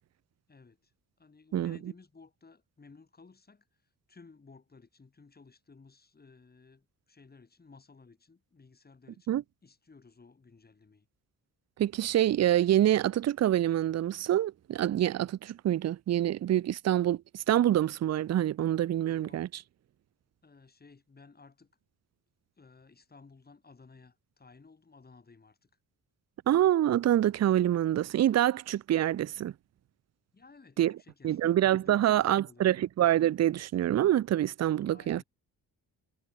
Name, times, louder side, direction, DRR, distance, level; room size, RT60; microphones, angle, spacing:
voice 1, 0.5-0.9 1.2-3.8 4.1-11.1 19.1-19.5 20.4-21.7 22.6-25.7 30.3-31.4 31.8-32.8 34.9-35.2, left 4 dB, 25° left, 6.0 m, -56 dB
voice 2, 11.8-17.2 17.5-19.5 26.5-29.5 30.8-30.9 31.2-35.2, right 12 dB, 45° right, 0.5 m, -26 dB
wide cardioid pair, 170°, 37 cm